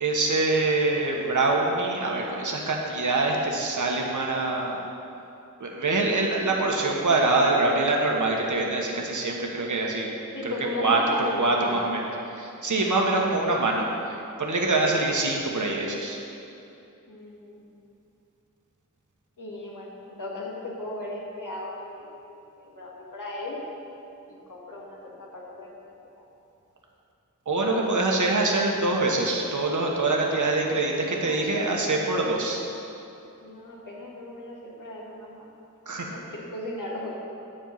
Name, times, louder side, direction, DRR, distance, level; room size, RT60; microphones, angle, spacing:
voice 1, 0.0-4.8 5.6-10.1 10.4-10.5 10.8-12.1 12.4-13.9 14.4-16.2 27.5-32.6 35.9-36.1, right 2 dB, 70° right, -1 dB, 1.2 m, -24 dB
voice 2, 10.3-11.9 13.8-14.0 17.1-17.7 19.4-23.6 24.3-25.9 31.2-31.7 33.4-35.5 36.1-37.1, left 1 dB, 75° left, -4 dB, 1.9 m, -37 dB
10.0 x 4.5 x 7.3 m, 2.7 s
wide cardioid pair, 75°, 32 cm